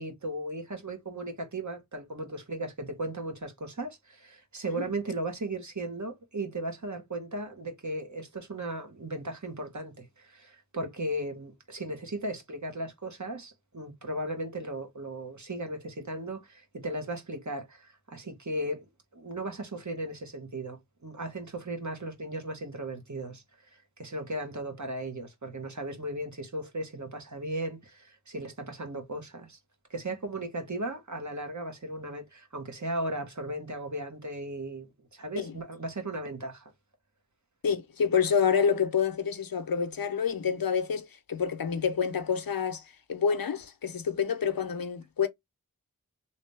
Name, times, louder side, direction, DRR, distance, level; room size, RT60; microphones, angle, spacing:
voice 1, 0.0-18.8 19.1-23.4 23.7-29.6 29.9-36.7, right 1 dB, 55° right, 1.5 m, -36 dB
voice 2, 37.6-42.8 43.1-45.3, left 6 dB, 75° left, 0.7 m, -28 dB
3.1 x 2.7 x 3.3 m
wide cardioid pair, 45°, 35 cm